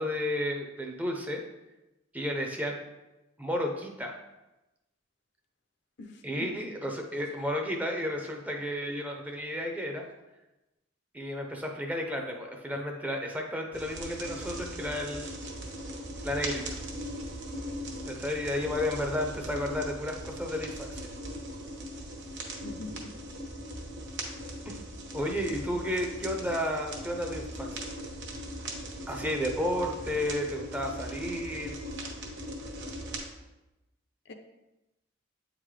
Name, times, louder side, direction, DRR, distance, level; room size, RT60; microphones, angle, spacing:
voice 1, 0.0-1.4 2.1-2.8 3.4-4.2 6.2-10.0 11.1-15.4 16.2-16.8 18.1-21.0 24.7-24.8 25.1-27.9 29.1-31.8, left 1 dB, 10° right, 2 dB, 0.5 m, -32 dB
voice 2, 6.0-6.5 22.6-23.1 34.3-34.4, left 3 dB, 55° left, 6 dB, 0.6 m, -43 dB
sound 1, 13.7-33.2, right 1 dB, 60° right, 1.0 m, -39 dB
8.3 x 3.8 x 3.2 m, 1.0 s
head